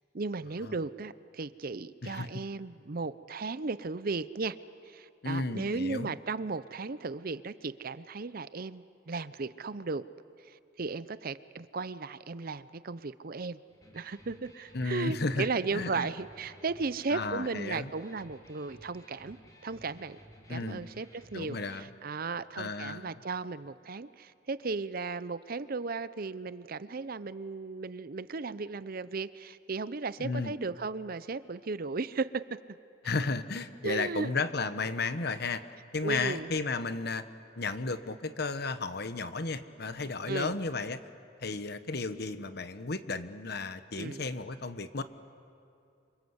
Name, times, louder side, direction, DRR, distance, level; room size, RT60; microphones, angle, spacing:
voice 1, 0.1-4.6 4.9-10.0 10.4-13.6 13.9-19.4 19.6-20.2 20.5-32.6 33.8-34.3 36.0-36.5 40.3-40.5 44.0-44.2, right 4 dB, 50° right, 15 dB, 0.6 m, -35 dB
voice 2, 5.2-6.2 14.7-15.5 15.7-16.1 17.1-17.9 20.5-20.8 21.3-21.8 22.6-23.1 30.2-30.5 33.0-35.6 35.9-37.2 37.6-41.0 41.4-45.0, left 3 dB, 55° left, 11 dB, 1.1 m, -33 dB
Electric guitar, 13.7-21.7, equal, 20° left, 3.3 m, -56 dB
27.5 x 26.0 x 8.0 m, 2.6 s
head